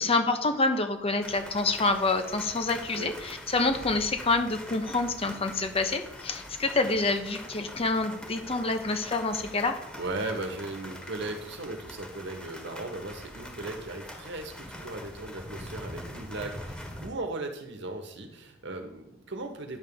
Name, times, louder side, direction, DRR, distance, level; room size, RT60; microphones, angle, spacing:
voice 1, 0.0-9.8, left 3 dB, 30° left, 6 dB, 0.9 m, -27 dB
sound 1, 1.2-17.1, left 1 dB, 5° left, 1.4 m, -43 dB
voice 2, 10.0-19.8, right 2 dB, 65° right, 5 dB, 1.3 m, -37 dB
10.0 x 3.6 x 7.1 m, 0.87 s
head